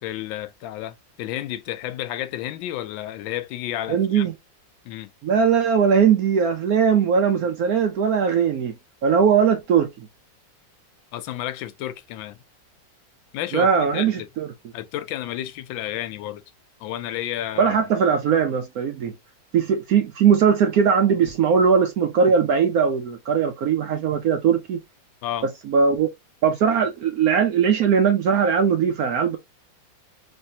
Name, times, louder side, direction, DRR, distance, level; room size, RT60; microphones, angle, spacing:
voice 1, 0.0-4.3 4.8-5.1 11.1-12.4 13.3-14.3 14.7-16.4 16.8-17.8 25.2-25.5, left 13 dB, 90° left, 1.3 m, -31 dB
voice 2, 3.9-4.3 5.2-8.7 9.0-9.9 13.5-14.5 17.6-19.2 19.5-24.8 25.7-26.1 26.4-29.4, right 6 dB, 70° right, 0.8 m, -20 dB
3.4 x 3.1 x 2.6 m
omnidirectional pair, 2.0 m